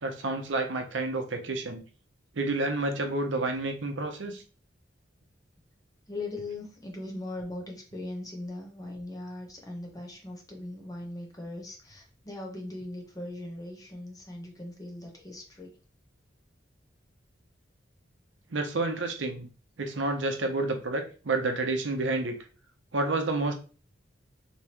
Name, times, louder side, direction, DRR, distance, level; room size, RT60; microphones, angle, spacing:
voice 1, 0.0-1.8 2.4-4.4 18.5-19.5 19.8-22.4 22.9-23.5, right 2 dB, 75° right, 5 dB, 0.7 m, -29 dB
voice 2, 6.1-15.7, left 2 dB, 20° left, 0 dB, 0.9 m, -39 dB
3.4 x 2.9 x 3.0 m, 0.36 s
head